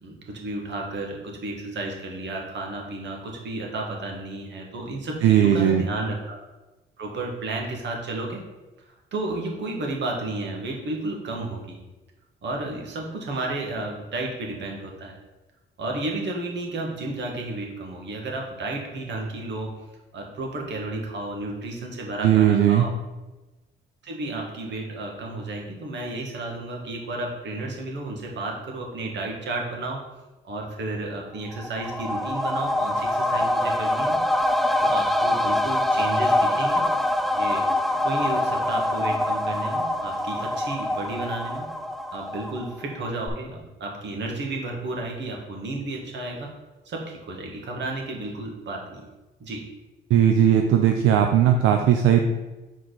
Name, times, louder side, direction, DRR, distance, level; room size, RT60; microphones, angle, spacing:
voice 1, 0.0-6.4 7.0-8.4 8.9-11.8 12.4-15.2 15.8-19.7 20.1-22.9 24.0-30.0 30.4-34.2 34.8-36.9 37.3-37.7 38.0-41.7 42.1-46.5 46.9-49.1 49.4-49.7, right 2 dB, 65° right, 0 dB, 1.8 m, -32 dB
voice 2, 5.2-5.8 22.2-22.9 50.1-52.2, right 9 dB, 85° right, 4 dB, 0.6 m, -18 dB
sound 1, 31.5-42.9 43.3-43.4, left 1 dB, ahead, 0.4 m, -24 dB
6.5 x 4.6 x 4.0 m, 1.1 s
cardioid pair, 90°, 20 cm